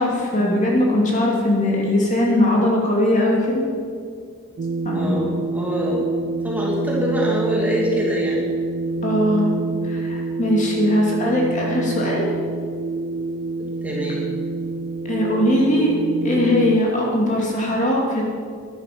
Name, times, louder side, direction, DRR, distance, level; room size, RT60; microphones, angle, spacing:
voice 1, 0.0-3.6 4.8-5.3 9.0-9.5 9.8-12.3 15.1-16.0 16.2-18.2, left 1 dB, 35° left, -3 dB, 2.6 m, -20 dB
sound 1, 4.6-16.8, right 3 dB, 45° right, 0.3 m, -26 dB
voice 2, 4.9-6.1 6.4-8.4 13.8-14.2, equal, 5° right, -5 dB, 2.6 m, -24 dB
14.5 x 11.0 x 6.0 m, 2.1 s
head